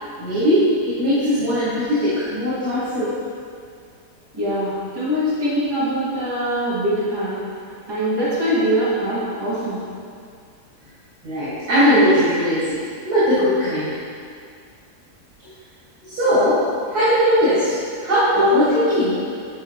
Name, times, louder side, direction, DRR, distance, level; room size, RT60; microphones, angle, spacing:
voice 1, 0.2-3.1 11.2-12.8 13.0-14.0 16.1-16.6 16.9-17.7 18.0-19.2, equal, 80° right, -13 dB, 2.6 m, -19 dB
voice 2, 4.3-7.4 7.9-9.8, equal, 15° right, -10 dB, 1.7 m, -22 dB
9.5 x 5.1 x 3.2 m, 2.3 s
omnidirectional pair, 1.6 m